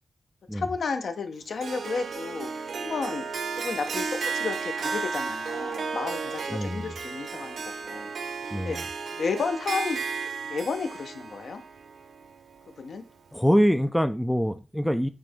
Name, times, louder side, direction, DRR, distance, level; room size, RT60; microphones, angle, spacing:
voice 1, 0.5-2.5 2.8-3.2 3.6-8.1 8.6-10.0 10.5-11.6 12.8-13.0, left 4 dB, 70° left, 0.9 m, -32 dB
Harp, 1.6-12.8, right 5 dB, 75° right, 0.7 m, -34 dB
voice 2, 6.5-6.9 8.5-8.8 13.3-15.1, equal, ahead, 0.4 m, -24 dB
8.9 x 3.3 x 3.5 m
wide cardioid pair, 150°, 0 cm